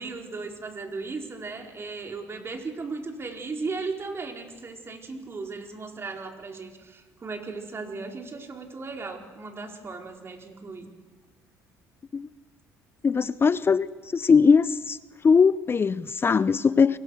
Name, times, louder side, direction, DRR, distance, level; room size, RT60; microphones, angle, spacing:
voice 1, 0.0-10.9, right 4 dB, 35° right, 3 dB, 4.6 m, -36 dB
voice 2, 13.0-13.9 14.1-15.0 15.2-17.0, left 5 dB, 35° left, 17 dB, 0.7 m, -20 dB
28.5 x 23.0 x 6.6 m, 1.3 s
supercardioid pair, 70°, 7 cm